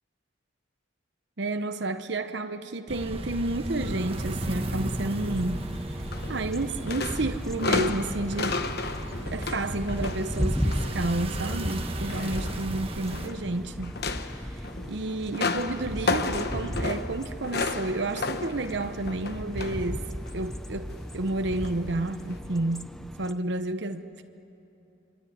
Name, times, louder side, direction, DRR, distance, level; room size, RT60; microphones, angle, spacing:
voice 1, 1.4-5.6 6.3-13.9 14.5-20.1 20.3-22.9 23.2-24.2, right 2 dB, 60° right, 8 dB, 0.9 m, -31 dB
sound 1, 2.9-13.3, right 1 dB, 30° right, 1.3 m, -35 dB
sound 2, 3.8-23.3, equal, ahead, 0.7 m, -36 dB
sound 3, 6.1-6.6 6.9-11.0 11.4-13.5 13.8-19.9 20.3-20.5 21.5-21.7 22.3-22.4, left 3 dB, 55° left, 1.1 m, -33 dB
26.0 x 24.0 x 9.4 m, 2.9 s
head